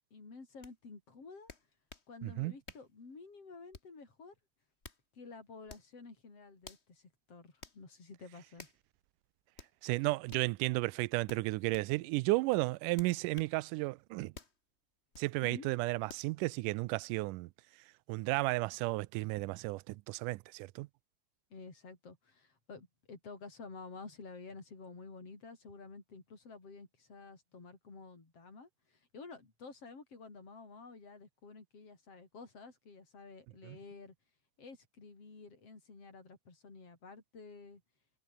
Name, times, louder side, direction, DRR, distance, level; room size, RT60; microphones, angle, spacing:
voice 1, 0.1-1.5 2.1-4.3 5.1-8.7 15.4-15.7 21.5-34.1 34.6-37.8, left 4 dB, 45° left, 6.7 m, -51 dB
sound 1, 0.6-0.7 1.5-2.1 2.7-2.9 3.7-4.0 4.6-5.0 5.7-5.9 6.6-6.9 7.6-7.8 8.6-8.8 9.6-9.7 10.3-10.5 11.3-11.9 13.0-13.6 14.3-14.6 15.1-15.3 16.1-16.3, left 4 dB, 25° left, 1.7 m, -52 dB
voice 2, 2.2-2.5 9.8-14.3 15.2-17.5 18.1-20.9 33.7-33.8, right 21 dB, 85° right, 2.1 m, -33 dB
omnidirectional pair, 3.7 m